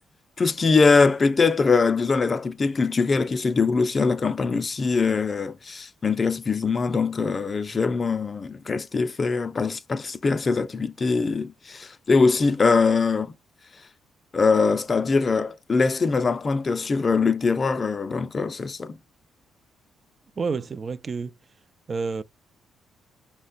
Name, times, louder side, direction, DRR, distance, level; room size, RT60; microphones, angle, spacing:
voice 1, 0.4-13.3 14.3-19.0, left 4 dB, 35° left, 0.4 m, -22 dB
voice 2, 20.4-21.3 21.9-22.2, right 4 dB, 40° right, 0.3 m, -29 dB
5.0 x 2.1 x 3.8 m
cardioid pair, 90°, 0 cm